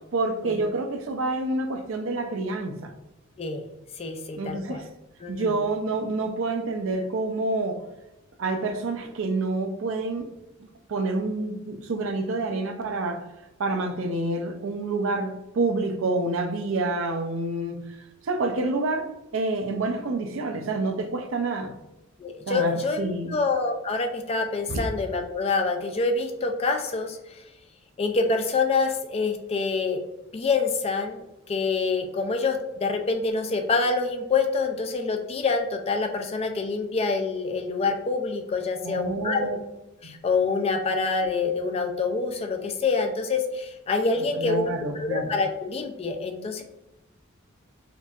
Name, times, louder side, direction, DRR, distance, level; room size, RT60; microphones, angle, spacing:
voice 1, 0.1-2.9 4.4-4.8 5.3-7.8 8.4-10.3 10.9-13.2 13.6-17.8 18.2-21.7 22.5-23.3 24.7-24.8 38.8-39.6 44.4-45.3, right 2 dB, 65° right, 5 dB, 0.5 m, -28 dB
voice 2, 4.0-4.8 5.2-5.6 22.2-23.0 23.3-27.2 28.0-30.0 30.3-39.4 40.0-44.7 45.0-46.6, left 4 dB, 30° left, 4 dB, 0.4 m, -26 dB
4.5 x 2.5 x 2.4 m, 0.97 s
head